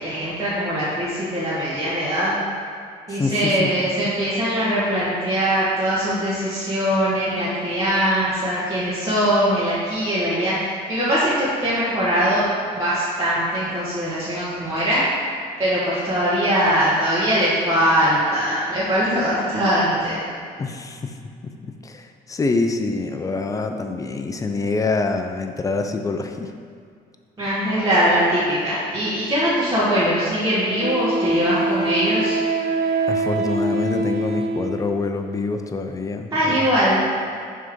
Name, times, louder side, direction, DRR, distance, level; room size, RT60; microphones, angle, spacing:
voice 1, 0.0-2.3 3.1-10.6 10.9-15.0 15.6-20.2 27.4-32.4 36.3-37.0, equal, 20° right, -11 dB, 1.6 m, -21 dB
voice 2, 3.1-3.9 20.6-21.2 21.4-26.5 33.1-36.7, left 3 dB, 20° left, 6 dB, 0.5 m, -26 dB
Wind instrument woodwind instrument, 29.5-29.6 30.8-34.9, right 3 dB, 60° right, 0.8 m, -24 dB
6.4 x 3.5 x 5.3 m, 2.2 s
cardioid pair, 110°, 17 cm